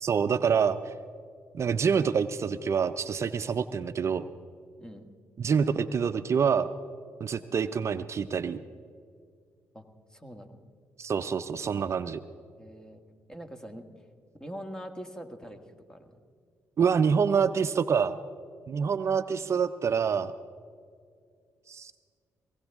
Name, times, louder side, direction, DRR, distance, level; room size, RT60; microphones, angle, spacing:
voice 1, 0.0-0.9 1.5-4.3 5.4-6.7 7.2-8.6 11.0-12.2 16.8-18.2 18.7-20.3 21.7-21.9, right 6 dB, 50° right, 11 dB, 0.5 m, -26 dB
voice 2, 4.8-5.1 9.7-10.6 12.6-13.0 13.3-13.8 14.4-15.6 15.9-16.1, equal, 10° left, 7 dB, 1.7 m, -43 dB
20.5 x 16.5 x 3.6 m, 2.2 s
supercardioid pair, 60°, 6 cm